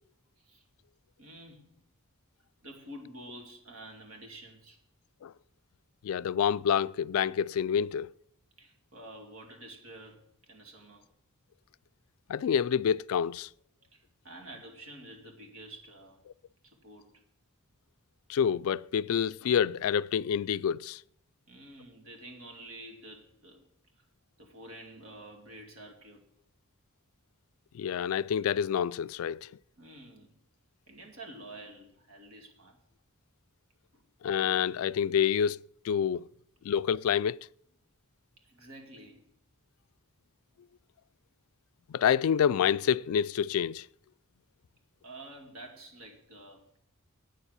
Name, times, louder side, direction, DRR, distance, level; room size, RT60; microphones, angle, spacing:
voice 1, 1.2-1.8 2.6-4.8 8.6-11.1 13.9-16.2 16.6-17.2 21.5-23.6 24.0-24.1 24.4-26.2 29.8-30.4 30.9-32.8 33.9-34.0 38.4-39.2 45.0-46.8, right 1 dB, 70° right, 2.4 m, -49 dB
voice 2, 6.0-8.1 12.3-13.5 18.3-21.0 27.7-29.5 34.2-35.6 35.8-36.3 36.6-37.4 41.9-43.9, left 8 dB, 70° left, 0.3 m, -27 dB
9.1 x 7.2 x 8.1 m
head